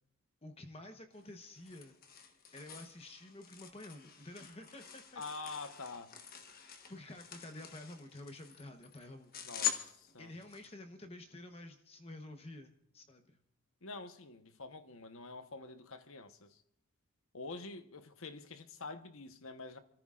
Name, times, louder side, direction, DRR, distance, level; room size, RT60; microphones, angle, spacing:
voice 1, 0.4-2.0 2.5-5.2 6.9-9.4 10.2-13.4, left 1 dB, 25° left, 1.0 m, -50 dB
sound 1, 1.1-10.7, left 9 dB, 40° left, 1.3 m, -44 dB
voice 2, 5.2-6.1 7.5-7.6 9.4-10.3 13.8-16.6 17.3-19.8, left 3 dB, 65° left, 1.1 m, -47 dB
28.0 x 14.0 x 2.5 m
head